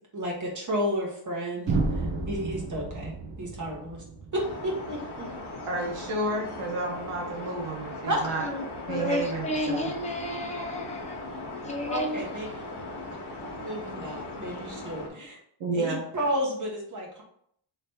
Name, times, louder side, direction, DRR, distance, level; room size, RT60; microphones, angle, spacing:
voice 1, 0.1-3.1 3.4-4.0 4.3-5.3 8.1-8.2 11.9-12.8 13.6-15.4 15.7-17.2, equal, 35° right, -2 dB, 1.3 m, -32 dB
sound 1, 1.7-5.6, right 3 dB, 60° right, 1.0 m, -32 dB
sound 2, 4.3-15.1, left 2 dB, 50° left, 1.1 m, -39 dB
voice 2, 5.7-8.5 8.9-9.9 15.6-16.0, right 2 dB, 85° right, -1 dB, 1.1 m, -31 dB
voice 3, 8.3-12.2, left 1 dB, 15° left, 0 dB, 0.7 m, -32 dB
3.3 x 3.1 x 4.3 m, 0.67 s
wide cardioid pair, 160°, 50 cm